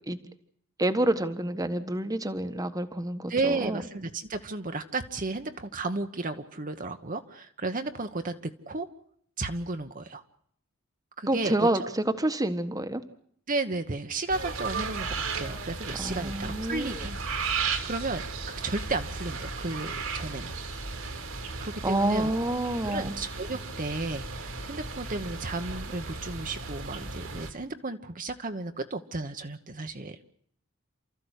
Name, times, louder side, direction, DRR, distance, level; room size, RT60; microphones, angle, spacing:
voice 1, 0.8-3.8 11.3-13.0 16.0-17.2 21.8-23.1, right 1 dB, 15° right, 10 dB, 1.4 m, -28 dB
voice 2, 3.3-8.9 9.4-10.2 11.2-11.7 13.5-17.1 17.8-20.6 21.6-22.3 22.8-30.2, right 3 dB, 40° right, 7 dB, 1.2 m, -33 dB
sound 1, 14.3-27.5, right 4 dB, 75° right, 2.9 m, -35 dB
29.5 x 14.5 x 8.2 m, 0.65 s
head